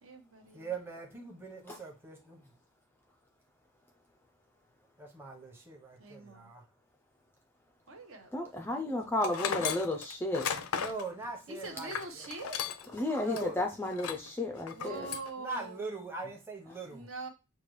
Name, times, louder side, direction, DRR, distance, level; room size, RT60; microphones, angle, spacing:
voice 1, 0.0-0.7 6.0-6.5 7.9-9.0 11.5-12.6 14.7-16.1 16.8-17.3, right 3 dB, 65° right, 4 dB, 0.9 m, -44 dB
voice 2, 0.5-2.4 5.0-6.6 10.7-12.2 13.2-13.6 15.4-17.1, right 3 dB, 10° right, 0 dB, 0.8 m, -41 dB
voice 3, 8.3-10.5 12.9-15.1, left 2 dB, 10° left, 4 dB, 0.3 m, -33 dB
Tools, 9.2-13.0 13.3-13.4 13.9-14.3 14.7-15.3, left 7 dB, 75° left, 0.4 m, -36 dB
6.6 x 2.3 x 3.1 m, 0.27 s
head